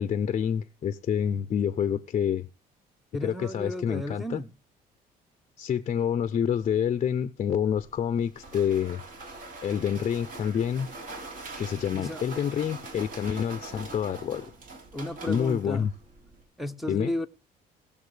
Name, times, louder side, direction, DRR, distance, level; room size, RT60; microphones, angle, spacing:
voice 1, 0.0-2.5 3.2-4.4 5.6-9.0 9.6-10.9 11.6-14.5 15.3-15.9 16.9-17.1, left 8 dB, 40° left, 0.6 m, -27 dB
voice 2, 3.1-4.5 11.9-12.3 14.9-15.9 16.6-17.3, left 1 dB, ahead, 0.8 m, -33 dB
sound 1, 7.7-16.4, right 3 dB, 55° right, 3.8 m, -43 dB
19.5 x 7.0 x 3.3 m
cardioid pair, 110°, 17 cm